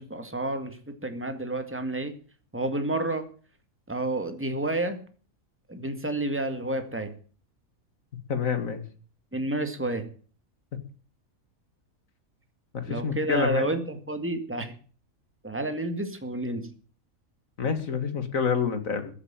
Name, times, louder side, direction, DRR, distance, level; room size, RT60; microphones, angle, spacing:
voice 1, 0.0-2.1 2.5-3.2 3.9-5.0 5.7-7.1 9.3-10.0 12.9-14.7 15.4-16.7, right 2 dB, 10° right, 7 dB, 2.1 m, -30 dB
voice 2, 8.3-8.8 12.7-13.7 17.6-19.1, left 6 dB, 70° left, 9 dB, 2.4 m, -27 dB
15.0 x 8.1 x 8.9 m, 0.41 s
omnidirectional pair, 1.5 m